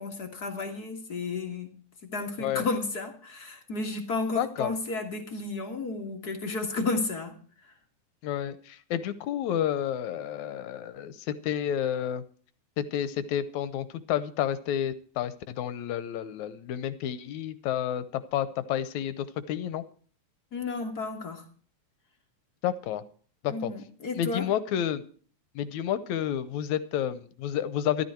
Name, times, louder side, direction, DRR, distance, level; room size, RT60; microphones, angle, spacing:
voice 1, 0.0-1.7 2.1-7.3 7.6-7.7 20.5-21.4 23.5-24.5, left 3 dB, 40° left, 4 dB, 1.7 m, -32 dB
voice 2, 4.4-4.7 8.2-12.2 12.8-19.8 22.6-23.0 23.4-23.7 24.2-25.0 25.6-28.1, left 10 dB, 75° left, 15 dB, 2.2 m, -30 dB
13.5 x 12.5 x 4.5 m, 0.43 s
omnidirectional pair, 3.4 m